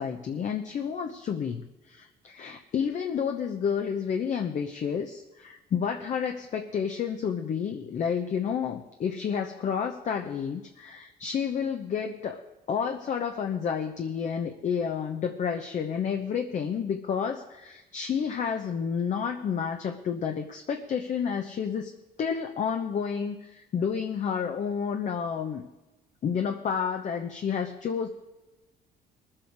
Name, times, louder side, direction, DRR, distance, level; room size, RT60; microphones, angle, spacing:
voice 1, 0.0-12.4 12.7-21.9 22.2-25.7 26.2-28.1, left 7 dB, 45° left, 4 dB, 1.0 m, -30 dB
21.0 x 7.7 x 4.8 m, 1.1 s
cardioid pair, 110°, 17 cm